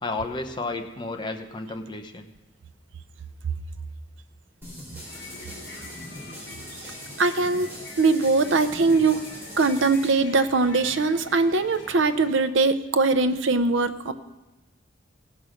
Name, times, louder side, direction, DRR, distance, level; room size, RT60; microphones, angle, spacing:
voice 1, 0.0-2.3, left 3 dB, 25° left, 5 dB, 0.8 m, -32 dB
sound 1, 4.6-10.1, equal, 10° right, 3.6 m, -42 dB
sound 2, 4.8-12.5, left 2 dB, 70° left, 2.5 m, -43 dB
voice 2, 7.2-7.7 8.0-9.2 9.6-14.1, right 3 dB, 75° right, 12 dB, 0.6 m, -21 dB
16.5 x 5.6 x 6.4 m, 1.1 s
head